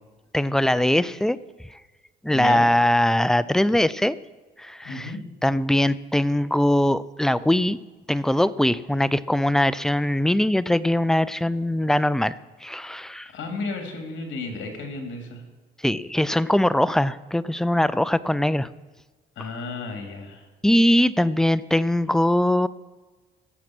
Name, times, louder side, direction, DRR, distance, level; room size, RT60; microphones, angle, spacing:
voice 1, 0.3-1.4 2.2-4.2 4.6-5.1 5.4-7.8 8.1-12.3 12.6-13.3 15.8-18.7 19.4-19.5 20.6-22.7, left 1 dB, ahead, 16 dB, 0.4 m, -21 dB
voice 2, 2.3-2.7 4.8-5.2 13.3-15.4 19.4-20.4, left 3 dB, 70° left, 4 dB, 2.8 m, -33 dB
16.5 x 7.4 x 6.0 m, 1.3 s
cardioid pair, 90°, 20 cm